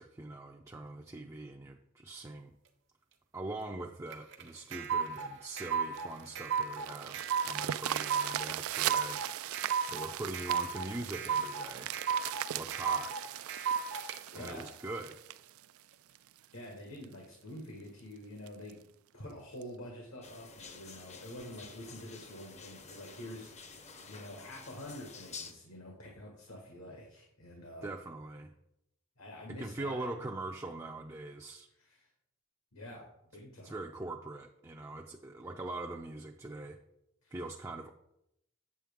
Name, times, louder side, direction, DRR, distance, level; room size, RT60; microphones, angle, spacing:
voice 1, 0.0-2.5 3.3-9.2 9.9-11.9 12.5-13.2 14.3-15.2 27.8-28.5 29.5-31.7 33.6-36.8 37.3-37.9, right 2 dB, 15° right, 1 dB, 0.4 m, -42 dB
sound 1, 4.1-14.1, right 6 dB, 60° right, 0.9 m, -34 dB
sound 2, 6.0-16.5 17.0-17.1 17.6-17.7 18.0-18.1 18.5-18.7 19.6-19.7, right 12 dB, 80° right, 0.3 m, -39 dB
voice 2, 14.3-14.8 16.5-18.8 19.1-23.7 24.1-27.9 29.2-30.1 31.8-32.1 32.7-33.8 37.2-37.3, left 1 dB, 75° left, 0 dB, 1.6 m, -47 dB
sound 3, 20.2-25.5, left 4 dB, 35° left, 0.7 m, -50 dB
7.8 x 7.4 x 3.5 m, 0.79 s
head